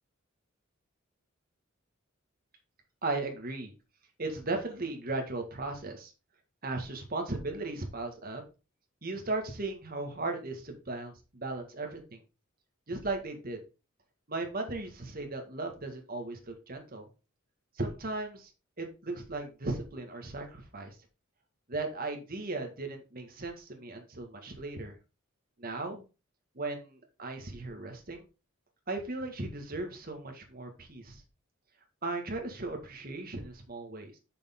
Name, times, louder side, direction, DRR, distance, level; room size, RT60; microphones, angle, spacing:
voice 1, 3.0-3.7 4.2-6.1 6.6-8.4 9.0-12.2 12.9-13.6 14.3-17.1 17.7-18.5 18.8-20.9 21.7-24.9 25.6-26.0 26.5-28.2 28.9-31.2 32.0-34.2, right 2 dB, 45° right, 4 dB, 1.7 m, -36 dB
6.6 x 6.4 x 3.7 m, 0.31 s
head